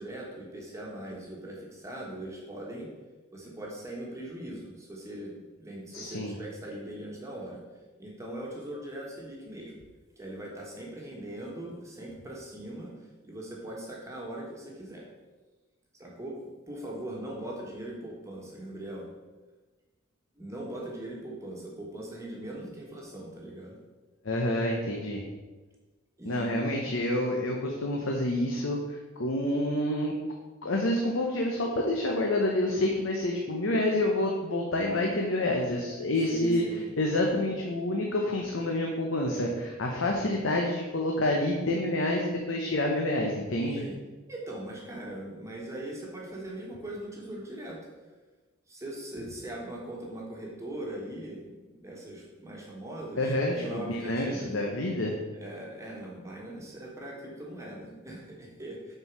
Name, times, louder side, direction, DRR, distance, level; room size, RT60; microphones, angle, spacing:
voice 1, 0.0-2.9 3.3-7.6 8.0-9.8 10.2-15.0 16.0-16.3 16.7-19.1 20.4-23.8 26.2-26.9 36.3-36.8 43.7-44.0 44.3-47.8 48.7-54.6 55.3-59.0, right 1 dB, 15° right, -3 dB, 1.4 m, -40 dB
voice 2, 5.9-6.3 24.2-25.2 26.3-30.1 30.6-36.6 37.0-43.8 53.2-55.2, left 1 dB, 65° left, 0 dB, 0.9 m, -28 dB
6.6 x 4.6 x 6.0 m, 1.2 s
head